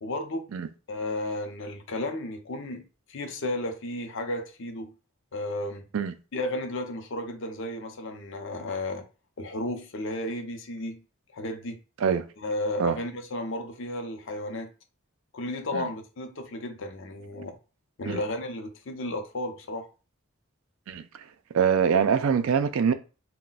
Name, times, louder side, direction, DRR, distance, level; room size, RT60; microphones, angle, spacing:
voice 1, 0.0-0.5 0.9-4.9 5.3-5.9 6.3-9.0 9.4-11.0 11.3-11.8 12.4-14.7 15.3-17.5 18.0-19.9, left 1 dB, 65° left, 0.6 m, -33 dB
voice 2, 21.5-22.9, right 7 dB, 75° right, 0.4 m, -23 dB
2.3 x 2.1 x 3.9 m
head